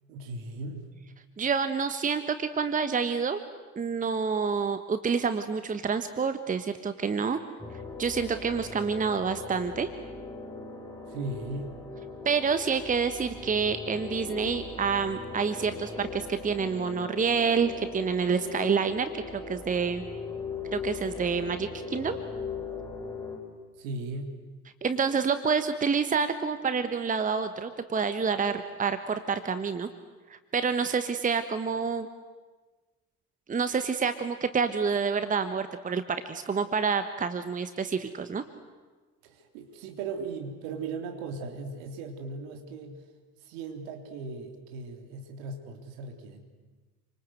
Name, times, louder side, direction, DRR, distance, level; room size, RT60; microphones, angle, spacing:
voice 1, 0.0-1.0 11.1-11.8 23.8-24.4 39.2-43.0 43.4-46.4, right 3 dB, 60° right, 4 dB, 3.6 m, -38 dB
voice 2, 1.4-3.4 3.7-7.4 8.0-9.9 12.2-20.0 20.7-22.2 24.8-29.9 30.5-32.1 33.5-38.4, right 5 dB, 15° right, 10 dB, 1.3 m, -28 dB
sound 1, 7.6-23.4, left 4 dB, 10° left, 5.7 m, -39 dB
28.0 x 25.5 x 8.0 m, 1.3 s
figure-of-eight pair, 65°, 45 cm